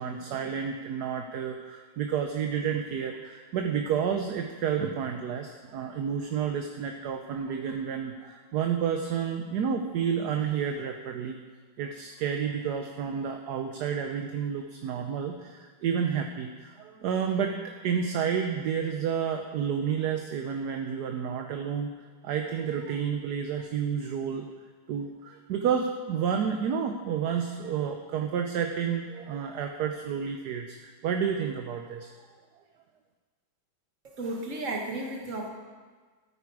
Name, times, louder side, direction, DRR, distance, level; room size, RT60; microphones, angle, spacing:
voice 1, 0.0-11.4 11.8-21.9 22.2-24.5 24.9-32.1, right 7 dB, 65° right, 5 dB, 1.1 m, -30 dB
voice 2, 34.2-35.5, right 2 dB, 40° right, 0 dB, 1.8 m, -33 dB
13.5 x 9.6 x 4.8 m, 1.5 s
omnidirectional pair, 2.1 m